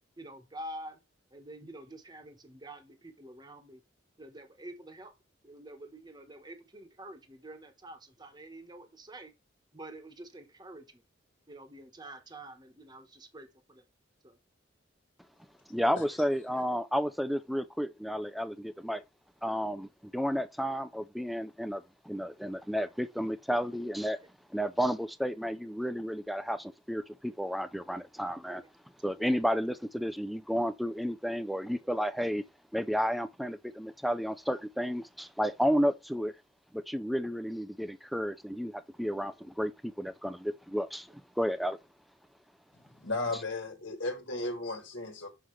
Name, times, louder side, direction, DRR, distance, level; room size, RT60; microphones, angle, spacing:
voice 1, 0.2-1.0 1.3-3.8 4.2-5.1 5.4-9.3 9.7-11.0 11.5-13.8 14.2-14.4 28.6-28.7 29.2-29.3 38.9-39.0 39.3-39.4, right 1 dB, 20° right, 1.1 m, -47 dB
voice 2, 15.7-19.0 19.4-24.2 24.5-28.6 29.0-32.4 32.7-36.3 36.7-41.8, equal, ahead, 0.4 m, -32 dB
voice 3, 43.0-45.3, left 2 dB, 65° left, 1.6 m, -35 dB
6.4 x 5.6 x 3.1 m
head